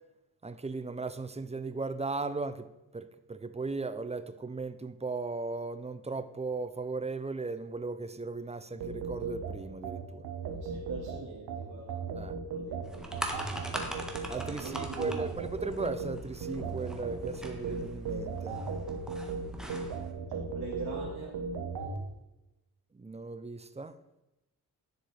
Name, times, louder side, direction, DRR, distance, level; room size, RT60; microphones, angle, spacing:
voice 1, 0.4-10.3 12.1-12.4 14.3-18.6 22.9-23.9, right 3 dB, 15° right, 0.6 m, -37 dB
sound 1, 8.8-22.0, right 5 dB, 80° right, 1.4 m, -37 dB
voice 2, 10.6-12.0 12.5-13.2 14.5-15.3 20.5-21.4 21.8-22.0, right 4 dB, 55° right, 2.8 m, -42 dB
sound 2, 12.8-20.1, equal, ahead, 1.6 m, -42 dB
10.5 x 6.4 x 4.9 m
cardioid pair, 80°, 37 cm